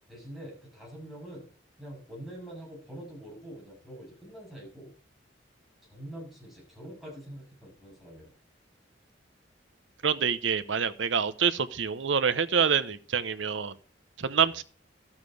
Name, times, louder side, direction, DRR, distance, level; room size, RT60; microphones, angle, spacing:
voice 1, 0.1-1.5 1.8-4.9 5.9-8.3 14.4-14.5, right 1 dB, ahead, -3 dB, 7.2 m, -45 dB
voice 2, 10.0-13.7 14.2-14.6, right 6 dB, 90° right, 12 dB, 0.8 m, -26 dB
12.5 x 7.4 x 4.8 m, 0.40 s
head